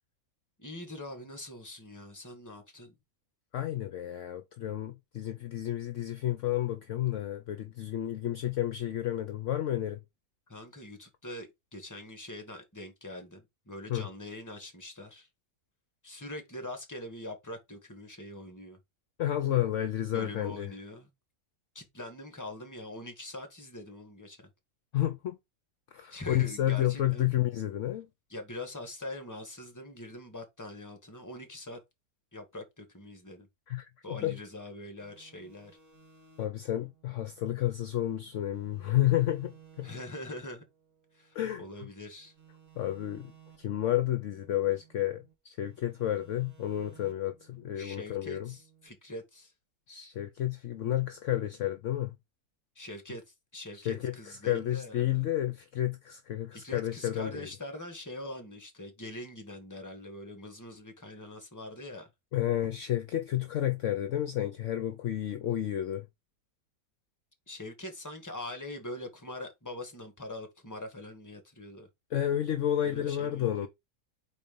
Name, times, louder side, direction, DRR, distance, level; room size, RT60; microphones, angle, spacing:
voice 1, 0.6-2.9 10.5-15.3 16.0-18.8 20.1-21.1 21.7-24.5 26.1-27.3 28.3-31.8 32.3-33.5 34.0-35.7 39.8-40.6 41.1-42.3 47.8-49.5 52.7-53.2 53.5-55.3 56.5-62.1 67.5-71.9 72.8-73.7, left 1 dB, 10° left, 1.5 m, -43 dB
voice 2, 3.5-10.0 13.9-14.1 19.2-20.7 24.9-25.4 25.9-28.1 33.7-34.4 36.4-40.0 41.3-41.6 42.8-43.3 43.6-48.5 49.9-52.2 53.8-57.5 62.3-66.1 72.1-73.7, left 12 dB, 65° left, 0.9 m, -31 dB
sound 1, 35.0-38.2 38.5-41.8 42.2-45.3 45.6-48.9, right 8 dB, 50° right, 2.1 m, -59 dB
4.3 x 4.2 x 5.3 m
omnidirectional pair, 1.6 m